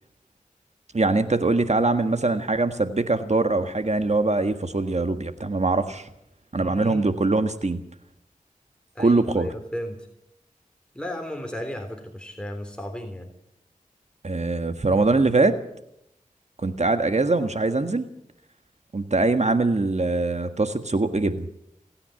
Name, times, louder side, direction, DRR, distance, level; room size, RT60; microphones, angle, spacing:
voice 1, 0.9-6.1 6.5-7.8 9.0-9.5 14.2-15.6 16.6-18.1 18.9-21.5, right 3 dB, 55° right, 9 dB, 1.6 m, -22 dB
voice 2, 6.6-7.1 9.0-10.0 11.0-13.3, equal, 5° left, 3 dB, 3.6 m, -34 dB
28.0 x 9.8 x 9.7 m, 0.79 s
cardioid pair, 40°, 14 cm